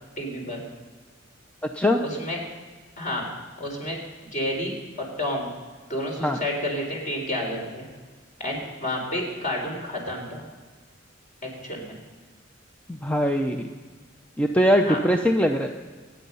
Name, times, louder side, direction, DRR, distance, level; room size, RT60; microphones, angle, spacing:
voice 1, 0.2-0.6 2.0-2.4 3.0-3.3 3.6-4.0 4.3-5.5 5.9-7.9 8.4-10.4 11.6-12.0 14.8-15.0, left 1 dB, 40° left, 1 dB, 4.0 m, -30 dB
voice 2, 12.9-13.6 14.4-15.7, equal, 5° left, 4 dB, 0.6 m, -21 dB
25.5 x 9.4 x 5.5 m, 1.5 s
head